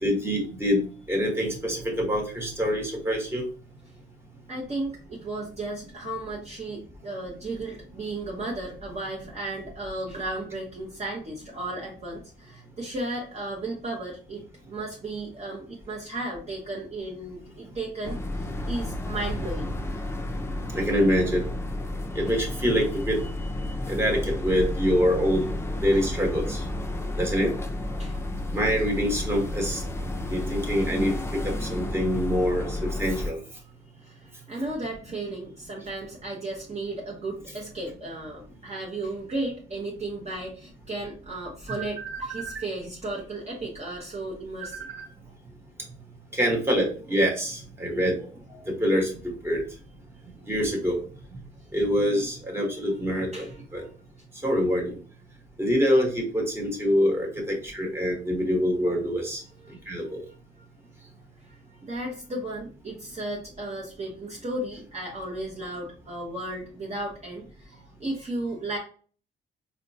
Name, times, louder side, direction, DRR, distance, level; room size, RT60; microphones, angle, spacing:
voice 1, 0.0-3.5 20.7-21.5 22.1-23.2 23.9-25.5 25.8-26.6 27.2-27.5 28.5-29.8 30.3-33.4 42.0-42.6 44.6-45.1 46.3-49.6 50.5-51.0 51.7-53.8 54.4-55.0 55.6-59.4 59.9-60.2, equal, 10° right, -1 dB, 1.2 m, -25 dB
voice 2, 4.5-19.7 28.0-28.2 34.0-44.9 53.3-53.9 59.6-60.6 61.4-68.8, right 2 dB, 35° right, -2 dB, 0.9 m, -35 dB
sound 1, 18.0-33.3, left 1 dB, 15° left, 0.5 m, -31 dB
4.2 x 2.2 x 2.7 m, 0.41 s
cardioid pair, 90°, 20 cm